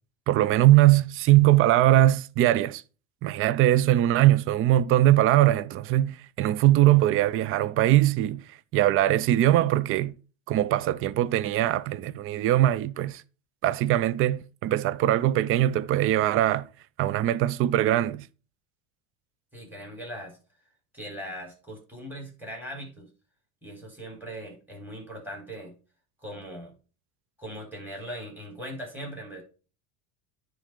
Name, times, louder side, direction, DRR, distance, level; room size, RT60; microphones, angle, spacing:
voice 1, 0.3-2.8 3.2-8.4 8.7-10.1 10.5-13.2 13.6-16.7 17.0-18.2, right 14 dB, 35° right, 0.4 m, -21 dB
voice 2, 19.5-20.4 20.9-23.1 23.6-25.7 26.2-26.7 27.4-29.4, equal, 5° right, 4.5 m, -39 dB
10.0 x 3.9 x 5.0 m
supercardioid pair, 115°, 40 cm